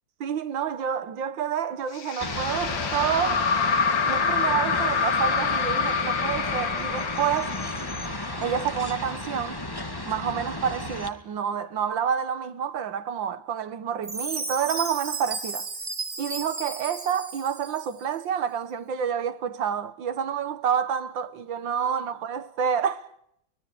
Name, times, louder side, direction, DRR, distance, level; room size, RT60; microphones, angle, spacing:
voice 1, 0.2-3.7 4.1-7.6 8.4-9.6 10.1-15.7 16.2-23.1, right 8 dB, 90° right, 2.0 m, -28 dB
sound 1, 1.9-9.2, left 6 dB, 80° left, 2.4 m, -27 dB
sound 2, 2.2-11.1, left 1 dB, 10° left, 2.0 m, -33 dB
Chime, 14.0-18.0, right 3 dB, 35° right, 2.9 m, -34 dB
25.0 x 21.5 x 9.3 m
omnidirectional pair, 2.0 m